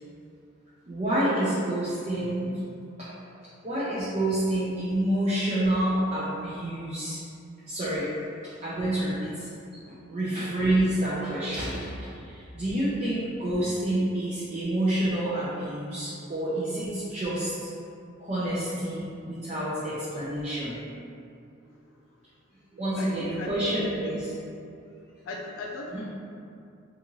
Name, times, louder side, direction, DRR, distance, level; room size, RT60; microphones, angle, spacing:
voice 1, 0.9-2.5 3.0-3.1 3.6-7.2 7.7-8.1 8.4-9.5 9.9-17.7 18.2-20.8 22.7-24.2 24.9-25.0 25.9-26.0, right 1 dB, 35° right, -11 dB, 0.5 m, -28 dB
voice 2, 23.0-24.2 25.2-26.0, left 2 dB, 75° left, -1 dB, 0.3 m, -37 dB
2.6 x 2.4 x 3.0 m, 2.5 s
head